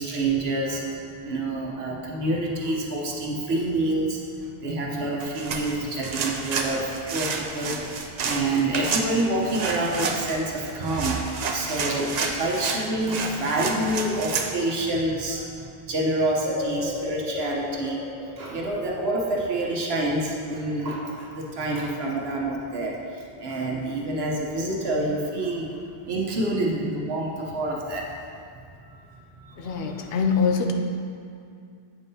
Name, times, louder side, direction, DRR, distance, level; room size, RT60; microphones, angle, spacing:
voice 1, 0.0-4.3 4.6-15.5 15.9-18.1 18.4-28.1 28.9-29.0 29.4-30.0, right 2 dB, 75° right, -2 dB, 1.2 m, -27 dB
sound 1, 5.2-14.5, right 4 dB, 55° right, 0.5 m, -30 dB
sound 2, 16.4-20.1 20.5-20.6, left 3 dB, 50° left, 0.5 m, -36 dB
voice 2, 29.6-30.7, left 5 dB, 70° left, 3 dB, 0.8 m, -24 dB
8.3 x 5.4 x 2.7 m, 2.4 s
omnidirectional pair, 1.0 m